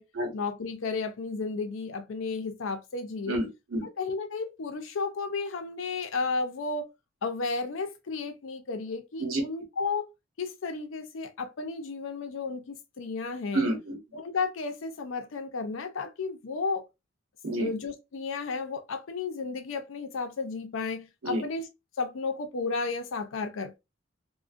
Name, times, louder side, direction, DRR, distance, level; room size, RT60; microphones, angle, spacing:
voice 1, 0.3-3.4 3.8-6.9 7.2-10.1 10.4-13.7 14.1-16.8 17.6-21.7 22.0-23.8, left 4 dB, 75° left, 0.5 m, -33 dB
voice 2, 3.3-3.9 9.2-9.4 13.5-14.0 17.4-17.7 21.2-21.4, right 1 dB, 80° right, 0.9 m, -29 dB
2.5 x 2.1 x 2.4 m
head